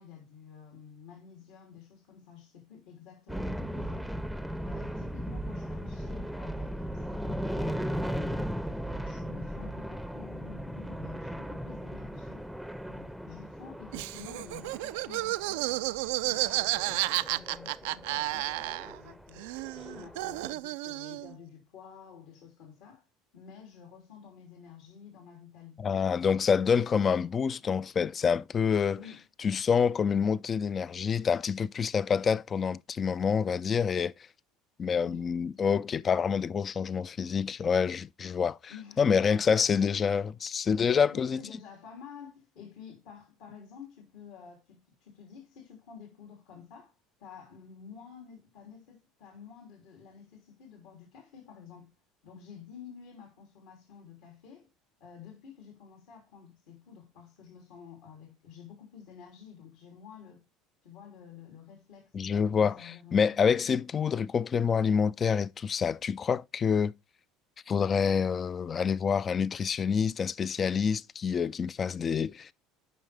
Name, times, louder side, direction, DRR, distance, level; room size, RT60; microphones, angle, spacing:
voice 1, 0.0-4.1 4.6-8.6 8.9-12.4 12.9-15.8 16.2-23.1 23.3-26.1 26.6-26.8 28.9-29.2 35.0-35.3 37.2-37.3 38.7-39.5 39.7-39.9 41.1-46.9 47.2-51.9 52.2-54.7 55.0-60.4 60.8-63.6, left 7 dB, 70° left, 3.0 m, -50 dB
sound 1, 3.3-20.5, equal, ahead, 0.6 m, -37 dB
Laughter, 13.9-19.1 19.4-21.3, right 19 dB, 80° right, 0.3 m, -32 dB
voice 2, 25.8-29.0 29.4-34.1 34.8-38.7 39.0-41.4 62.1-66.9 67.7-72.5, left 6 dB, 35° left, 0.4 m, -27 dB
9.3 x 5.5 x 3.3 m
supercardioid pair, 95°, 0 cm